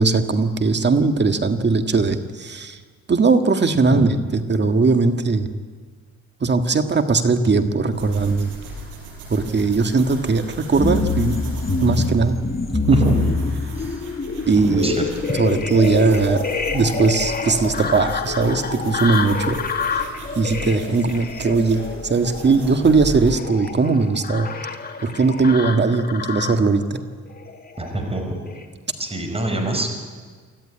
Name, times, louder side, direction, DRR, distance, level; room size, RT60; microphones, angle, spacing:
voice 1, 0.0-2.8 3.1-5.5 6.4-8.5 9.3-11.3 11.8-12.4 12.9-13.0 14.5-14.9 15.4-16.4 16.7-19.6 20.3-24.5 25.0-27.0, right 4 dB, 35° right, 7 dB, 1.8 m, -19 dB
sound 1, 7.9-23.3, right 2 dB, 90° right, 5.6 m, -37 dB
sound 2, 10.8-26.7 27.4-28.0 28.5-28.6, left 4 dB, 30° left, 2.2 m, -26 dB
voice 2, 12.9-14.0 14.5-15.4 27.8-28.4 29.0-30.0, right 1 dB, 20° right, 4 dB, 5.2 m, -25 dB
24.5 x 14.0 x 9.9 m, 1.5 s
cardioid pair, 90°, 30 cm